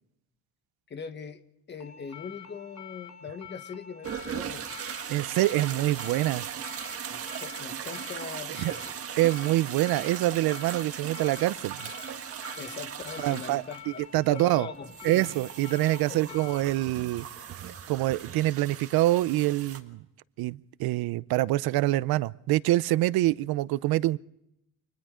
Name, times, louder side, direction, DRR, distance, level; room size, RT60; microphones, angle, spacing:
voice 1, 0.9-1.4 1.7-5.0 7.1-8.9 12.6-14.0 14.3-15.3 16.1-16.4, left 6 dB, 30° left, 9 dB, 1.3 m, -41 dB
sound 1, 1.8-16.6, left 7 dB, 50° left, 2.9 m, -47 dB
sound 2, 4.0-19.8, right 8 dB, 40° right, 1.6 m, -39 dB
voice 2, 5.1-6.4 8.6-8.7 9.2-11.9 13.2-14.7 15.0-17.3 17.6-20.0 20.4-24.2, right 16 dB, 80° right, 18 dB, 0.7 m, -26 dB
30.0 x 25.0 x 3.8 m, 0.82 s
cardioid pair, 165°, 36 cm